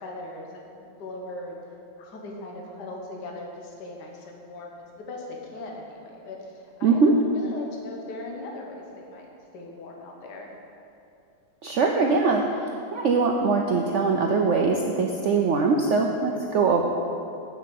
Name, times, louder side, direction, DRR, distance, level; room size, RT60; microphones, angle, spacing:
voice 1, 0.0-1.6 2.0-7.1 7.3-9.3 9.5-10.5 16.3-16.4, left 2 dB, 65° left, -1 dB, 1.6 m, -39 dB
voice 2, 6.8-7.1 11.6-16.8, right 4 dB, 80° right, 2 dB, 0.6 m, -22 dB
7.2 x 6.8 x 7.7 m, 2.7 s
omnidirectional pair, 1.9 m